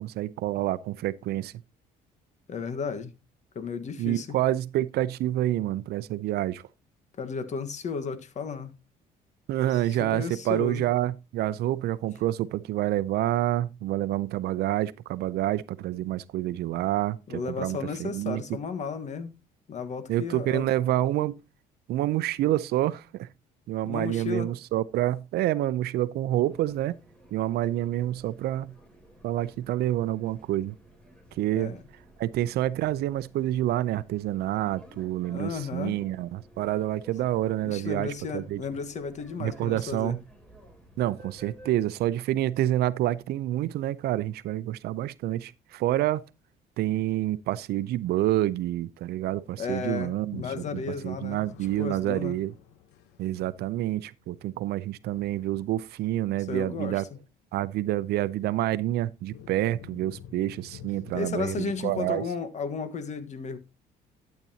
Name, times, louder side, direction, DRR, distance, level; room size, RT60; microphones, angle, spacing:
voice 1, 0.0-1.5 4.0-6.6 9.5-18.4 20.1-21.3 21.9-23.3 23.7-27.0 27.3-28.7 29.2-30.7 31.4-31.7 32.2-38.6 39.4-40.2 41.0-46.2 46.8-50.6 51.0-52.5 53.2-57.0 57.5-62.2, right 14 dB, 75° right, 0.6 m, -28 dB
voice 2, 2.5-3.1 3.5-4.3 7.2-8.7 9.7-10.9 17.3-19.3 19.7-20.7 23.8-24.5 31.5-31.8 35.3-36.0 37.6-40.2 49.6-51.4 51.8-52.4 56.5-57.0 61.1-63.6, left 5 dB, 45° left, 1.4 m, -34 dB
sound 1, 26.5-41.8, equal, 5° left, 3.4 m, -54 dB
sound 2, 49.3-54.1 55.1-56.4 56.7-56.8 59.3-61.7, left 10 dB, 90° left, 1.0 m, -48 dB
12.0 x 8.3 x 2.8 m
cardioid pair, 110°, 17 cm